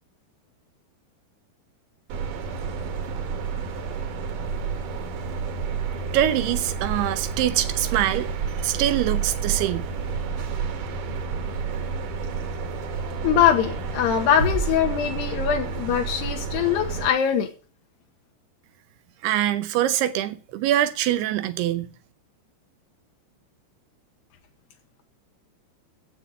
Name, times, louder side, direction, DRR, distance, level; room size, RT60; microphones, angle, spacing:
sound 1, 2.1-17.1, right 5 dB, 60° right, 2.4 m, -30 dB
voice 1, 6.1-8.3 8.6-9.9 19.2-21.9, right 12 dB, 80° right, 2.5 m, -24 dB
voice 2, 13.2-17.5, left 9 dB, 75° left, 3.1 m, -22 dB
sound 2, 14.4-16.1, right 2 dB, 40° right, 1.3 m, -31 dB
8.4 x 8.1 x 8.1 m
omnidirectional pair, 5.2 m